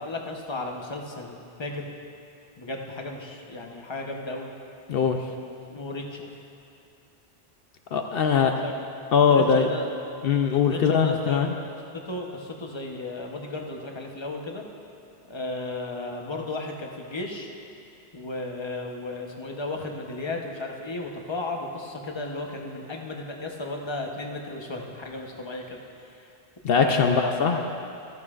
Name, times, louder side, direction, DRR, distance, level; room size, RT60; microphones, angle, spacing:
voice 1, 0.0-1.9 2.6-4.5 5.7-6.3 8.6-8.7 9.3-9.9 10.7-11.4 11.9-14.6 15.3-17.5 18.1-26.3 26.7-27.6, left 2 dB, 25° left, 1 dB, 0.9 m, -34 dB
voice 2, 4.9-5.2 7.9-8.5 9.1-9.7 10.2-11.5 26.6-27.6, left 6 dB, 65° left, 4 dB, 0.8 m, -21 dB
14.0 x 14.0 x 2.5 m, 2.7 s
omnidirectional pair, 1.1 m